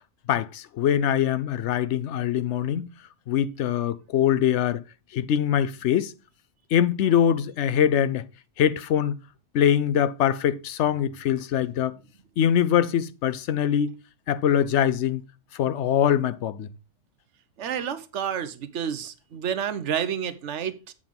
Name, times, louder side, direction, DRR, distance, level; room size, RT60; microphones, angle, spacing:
voice 1, 0.3-2.9 3.3-4.8 5.1-6.1 6.7-8.3 8.6-9.2 9.5-12.0 12.4-13.9 14.3-15.2 15.5-16.7, left 9 dB, 75° left, 0.9 m, -23 dB
voice 2, 17.6-20.9, right 8 dB, 75° right, 1.1 m, -30 dB
8.2 x 4.9 x 5.1 m
omnidirectional pair, 1.2 m